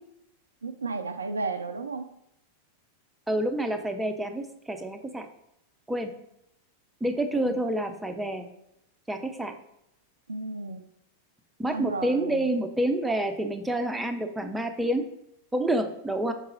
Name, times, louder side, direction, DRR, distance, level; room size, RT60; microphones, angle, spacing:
voice 1, 0.6-2.1 7.4-7.6 10.3-10.9 11.7-12.6, right 3 dB, 75° right, 8 dB, 0.3 m, -34 dB
voice 2, 3.3-5.3 5.9-6.1 7.0-8.5 9.1-9.5 11.6-15.0 15.5-16.3, right 1 dB, 5° right, 6 dB, 0.6 m, -28 dB
6.0 x 3.9 x 4.0 m, 0.81 s
figure-of-eight pair, 90°, 0 cm